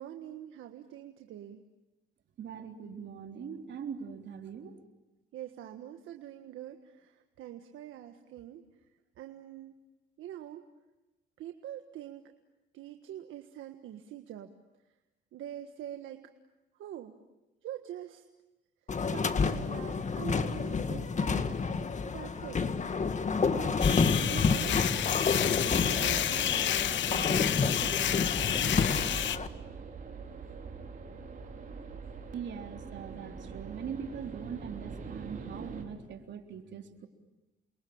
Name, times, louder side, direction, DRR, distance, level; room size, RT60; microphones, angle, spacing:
voice 1, 0.0-1.6 5.3-8.6 9.2-9.8 10.2-10.6 11.4-12.3 12.7-14.5 15.3-16.3 16.8-17.2 17.6-18.2 19.1-21.5 22.1-22.6 23.5-23.9 24.2-24.9 25.6-29.0, right 11 dB, 85° right, 6 dB, 1.6 m, -44 dB
voice 2, 2.4-4.8 32.3-37.1, right 7 dB, 65° right, 4 dB, 3.6 m, -41 dB
sound 1, 18.9-29.5, left 5 dB, 35° left, 1.9 m, -29 dB
sound 2, 23.3-35.8, right 5 dB, 45° right, 5.0 m, -44 dB
sound 3, 23.8-29.4, left 11 dB, 70° left, 1.0 m, -30 dB
29.0 x 23.0 x 8.8 m, 1.1 s
cardioid pair, 90°, 20 cm